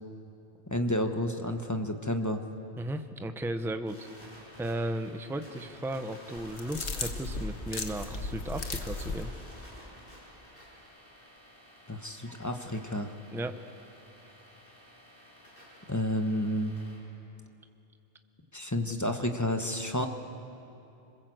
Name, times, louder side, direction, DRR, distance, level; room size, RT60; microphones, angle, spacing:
voice 1, 0.7-2.4 11.9-13.1 15.9-16.8 18.5-20.1, left 1 dB, 15° left, 5 dB, 1.2 m, -30 dB
voice 2, 2.8-4.1 4.6-9.3 13.3-13.6, right 1 dB, 5° right, 8 dB, 0.7 m, -35 dB
sound 1, 3.9-17.0, equal, 55° left, 7.5 m, -53 dB
sound 2, 6.4-9.3, left 3 dB, 75° left, 1.6 m, -36 dB
27.0 x 21.0 x 7.9 m, 2.8 s
omnidirectional pair, 1.1 m